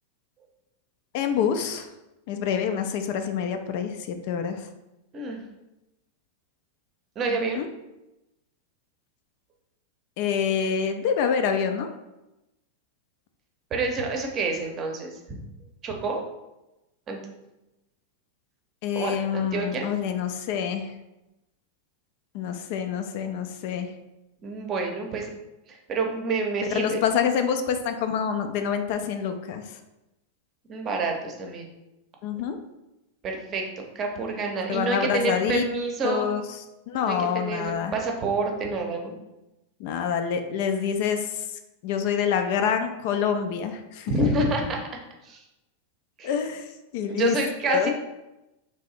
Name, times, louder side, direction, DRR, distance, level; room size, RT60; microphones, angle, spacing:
voice 1, 1.1-1.9 2.3-4.7 7.3-7.7 10.2-11.9 18.8-20.9 22.3-23.9 26.7-29.8 32.2-32.6 34.7-35.6 36.0-36.4 36.9-38.0 39.8-41.4 41.8-44.1 46.2-47.4 47.7-47.9, left 7 dB, 50° left, 7 dB, 0.3 m, -27 dB
voice 2, 7.2-7.6 13.7-15.4 15.8-16.2 17.1-17.2 18.9-19.9 24.4-25.3 25.7-27.0 30.7-31.7 33.2-36.3 37.0-39.2 44.1-44.8 45.2-45.4 46.2-46.3 47.1-47.9, right 3 dB, 30° right, 2 dB, 0.7 m, -28 dB
3.3 x 2.7 x 4.1 m, 0.97 s
figure-of-eight pair, 90°, 0 cm